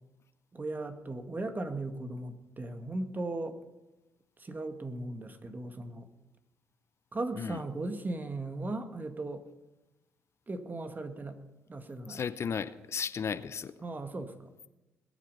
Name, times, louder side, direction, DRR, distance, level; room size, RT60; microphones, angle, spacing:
voice 1, 0.5-3.6 4.4-6.1 7.1-9.4 10.5-11.4 11.7-12.2 13.8-14.5, right 2 dB, 30° right, 7 dB, 1.8 m, -37 dB
voice 2, 12.1-13.7, left 6 dB, 50° left, 14 dB, 0.7 m, -34 dB
20.5 x 8.9 x 5.5 m, 1.0 s
hypercardioid pair, 45°, 6 cm